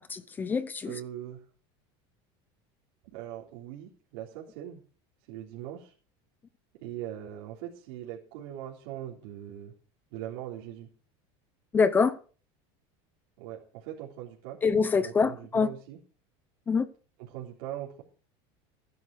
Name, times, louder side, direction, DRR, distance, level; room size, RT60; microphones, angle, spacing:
voice 1, 0.1-1.0 11.7-12.2 14.6-15.7 16.7-16.9, left 5 dB, 15° left, 0.6 m, -25 dB
voice 2, 0.8-1.4 3.1-4.8 5.3-5.9 6.8-9.7 10.1-10.9 13.4-14.6 15.0-16.0 17.3-18.0, right 12 dB, 65° right, 3.5 m, -41 dB
15.5 x 10.5 x 4.8 m
cardioid pair, 175°, 13 cm